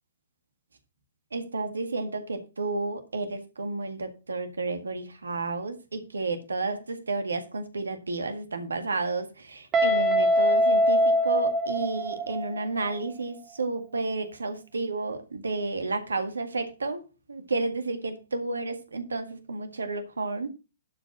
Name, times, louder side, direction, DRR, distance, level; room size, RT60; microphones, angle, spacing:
voice 1, 1.3-17.0 17.3-20.5, right 3 dB, 75° right, 8 dB, 1.8 m, -31 dB
Guitar, 9.7-12.6, equal, 20° right, 2.7 m, -22 dB
11.5 x 5.0 x 5.8 m, 0.30 s
figure-of-eight pair, 115°, 0 cm